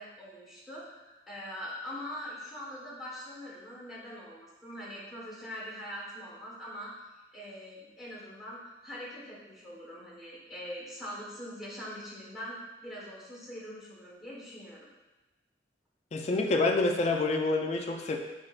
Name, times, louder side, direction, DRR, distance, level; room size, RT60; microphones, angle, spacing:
voice 1, 0.0-6.9 7.3-14.9, equal, ahead, -7 dB, 1.3 m, -43 dB
voice 2, 16.1-18.2, left 3 dB, 40° left, 3 dB, 0.4 m, -27 dB
4.3 x 2.9 x 2.4 m, 1.1 s
head